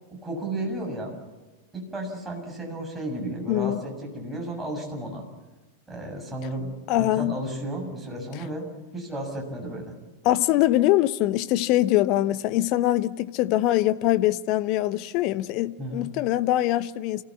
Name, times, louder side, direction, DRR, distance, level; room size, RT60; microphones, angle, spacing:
voice 1, 0.2-1.2 1.7-5.2 5.9-8.7 8.9-9.9 15.8-16.1, right 1 dB, 10° right, 7.1 m, -33 dB
voice 2, 3.5-3.8 6.9-7.4 10.2-17.2, left 15 dB, 40° left, 0.9 m, -23 dB
29.0 x 15.5 x 8.5 m
figure-of-eight pair, 90°, 0 cm